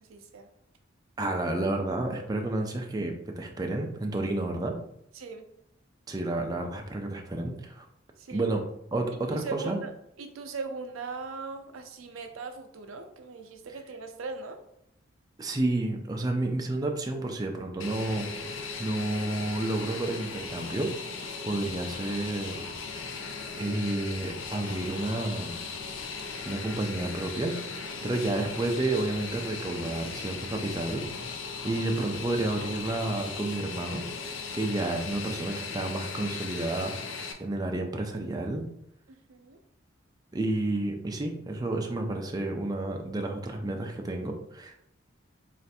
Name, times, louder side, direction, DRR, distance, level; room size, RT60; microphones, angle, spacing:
voice 1, 0.1-0.5 5.1-5.4 8.2-8.6 9.3-9.9 10.2-14.6 28.0-28.1 39.1-39.6, right 4 dB, 80° right, 6 dB, 0.5 m, -39 dB
voice 2, 1.2-4.7 6.1-7.9 8.3-8.6 8.9-9.8 15.4-20.9 21.4-22.6 23.6-25.6 26.5-27.6 27.8-31.1 31.6-38.7 40.3-44.8, right 2 dB, 20° right, 2 dB, 0.4 m, -31 dB
Fixed-wing aircraft airplane, 17.8-37.3, left 4 dB, 65° left, 0.5 m, -38 dB
3.2 x 2.5 x 4.1 m, 0.75 s
head